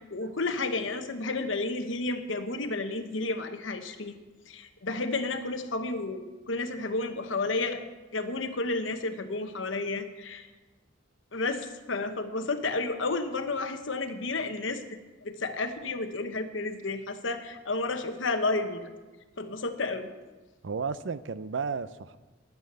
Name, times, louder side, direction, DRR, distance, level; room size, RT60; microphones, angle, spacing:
voice 1, 0.0-4.2 4.5-7.8 8.1-10.5 11.3-14.8 15.2-18.9 19.4-20.1, left 3 dB, 80° left, 8 dB, 1.1 m, -31 dB
voice 2, 20.6-22.2, right 5 dB, 70° right, 15 dB, 0.5 m, -33 dB
10.5 x 9.6 x 6.7 m, 1.2 s
head